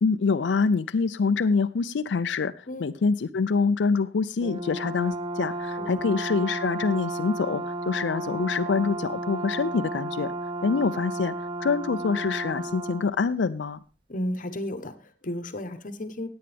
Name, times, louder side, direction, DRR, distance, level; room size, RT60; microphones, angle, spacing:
voice 1, 0.0-10.3 10.6-11.3 11.6-13.8, left 4 dB, 90° left, 9 dB, 0.5 m, -25 dB
Brass instrument, 4.4-13.1, right 2 dB, 30° right, 0.6 m, -33 dB
voice 2, 14.1-16.3, left 1 dB, 50° left, 11 dB, 1.0 m, -33 dB
17.0 x 8.7 x 3.4 m, 0.34 s
head